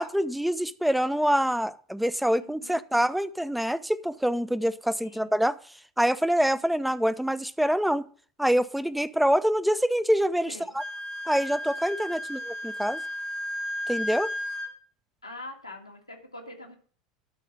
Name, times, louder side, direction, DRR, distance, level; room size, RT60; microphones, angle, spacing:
voice 1, 0.0-5.6 6.0-8.1 8.4-10.8 11.3-13.0 13.9-14.3, equal, ahead, 15 dB, 0.6 m, -25 dB
voice 2, 2.3-2.8 5.0-5.3 10.5-10.8 12.0-12.2 15.2-16.8, left 2 dB, 90° left, 2 dB, 1.8 m, -44 dB
Wind instrument woodwind instrument, 10.8-14.7, left 1 dB, 60° right, 3.1 m, -34 dB
12.0 x 4.7 x 6.9 m, 0.43 s
figure-of-eight pair, 80°, 3 cm